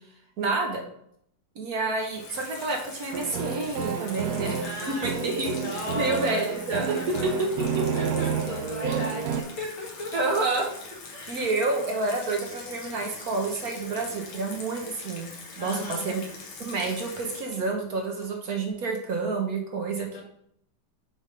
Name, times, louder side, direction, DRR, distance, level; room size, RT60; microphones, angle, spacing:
voice 1, 0.4-0.8 1.5-4.6 5.0-5.5 5.9-7.0 7.2-7.5 7.7-7.8 8.8-9.0 10.1-10.7 11.3-15.3 15.6-16.2 16.6-20.2, right 3 dB, 55° right, 1 dB, 1.2 m, -29 dB
Water tap faucet / Sink (filling or washing), 2.0-18.7, left 4 dB, 85° left, 2.0 m, -43 dB
sound 1, 3.1-9.4, right 7 dB, 85° right, 0.9 m, -30 dB
voice 2, 4.6-6.4 6.8-7.3 7.9-10.3 11.1-11.5 15.6-16.1 20.0-20.2, left 2 dB, 70° left, -2 dB, 2.2 m, -37 dB
6.5 x 3.5 x 5.1 m, 0.70 s
omnidirectional pair, 2.3 m